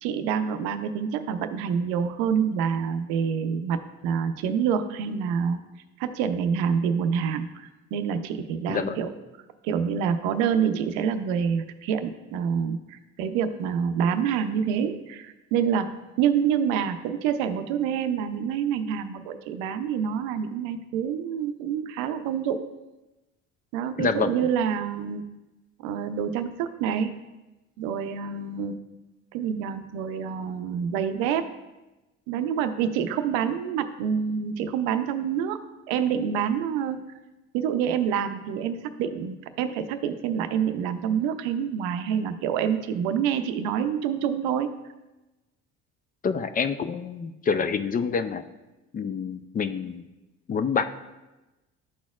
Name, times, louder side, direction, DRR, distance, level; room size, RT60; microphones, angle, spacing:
voice 1, 0.0-5.6 6.0-9.1 9.6-15.9 16.2-22.6 23.7-25.2 25.8-27.1 27.8-28.8 29.3-31.5 32.3-35.6 35.9-37.0 37.5-44.7, right 7 dB, 90° right, 9 dB, 0.6 m, -27 dB
voice 2, 8.7-9.0 24.0-24.3 46.2-48.4 48.9-50.0 50.5-50.8, left 6 dB, 25° left, 10 dB, 0.4 m, -27 dB
11.5 x 4.2 x 2.3 m, 1.1 s
supercardioid pair, 90°, 32 cm